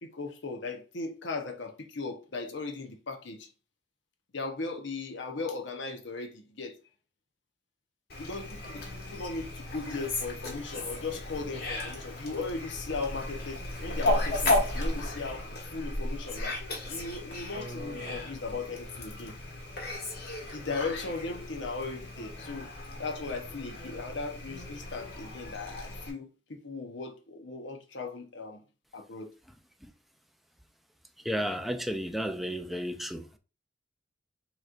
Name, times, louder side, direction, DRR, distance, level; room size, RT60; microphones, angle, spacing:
voice 1, 0.0-3.5 4.3-6.8 8.2-16.6 16.9-19.4 20.5-22.7 23.0-28.6 28.9-29.3, left 3 dB, 80° left, 0.9 m, -37 dB
Fowl, 8.1-26.1, left 2 dB, 60° left, 1.6 m, -35 dB
voice 2, 31.2-33.4, equal, ahead, 0.4 m, -32 dB
6.4 x 3.1 x 2.5 m
head